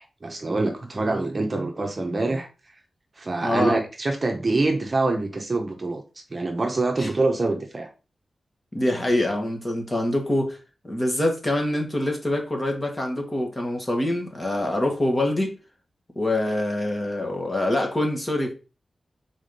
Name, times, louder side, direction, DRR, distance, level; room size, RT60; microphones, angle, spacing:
voice 1, 0.0-2.5 3.2-6.0 6.3-7.9, right 2 dB, 30° right, 1.0 m, -25 dB
voice 2, 3.4-3.8 7.0-7.1 8.7-10.6 10.8-15.6 16.1-18.5, left 1 dB, 20° left, 1.7 m, -25 dB
4.8 x 4.3 x 5.4 m
wide cardioid pair, 155°, 0 cm